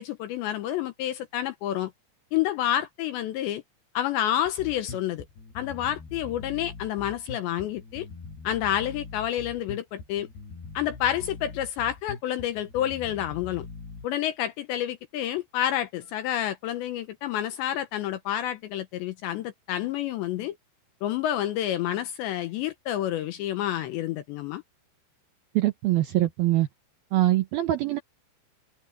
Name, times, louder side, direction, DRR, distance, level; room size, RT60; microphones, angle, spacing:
voice 1, 0.0-1.9 2.3-3.6 3.9-5.2 5.6-8.1 8.4-10.3 10.7-13.7 14.0-20.6 21.0-24.6, left 11 dB, 75° left, 2.8 m, -29 dB
Bass guitar, 4.4-14.0, left 4 dB, 55° left, 7.8 m, -42 dB
voice 2, 25.5-26.7 27.1-28.0, right 15 dB, 75° right, 2.2 m, -23 dB
omnidirectional pair, 5.9 m